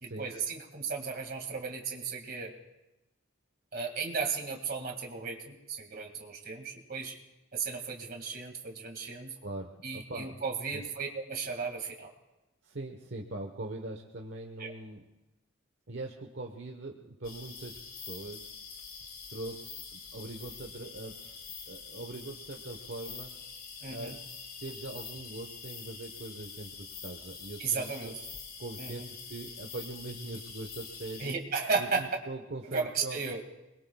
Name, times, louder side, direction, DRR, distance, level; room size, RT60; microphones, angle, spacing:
voice 1, 0.0-2.5 3.7-7.2 7.5-9.4 9.8-12.1 14.6-14.7 23.8-24.1 27.6-28.1 28.8-29.1 31.2-32.1 32.6-33.4, right 5 dB, 50° right, 3 dB, 2.1 m, -35 dB
voice 2, 9.4-10.4 10.7-10.8 12.6-15.1 15.9-18.5 19.3-23.3 23.9-24.2 24.6-28.1 28.6-31.3 31.8-33.2, right 2 dB, 65° right, 2 dB, 1.1 m, -42 dB
sound 1, 17.2-31.3, left 5 dB, 45° left, 1.9 m, -45 dB
28.0 x 21.5 x 2.3 m, 0.98 s
head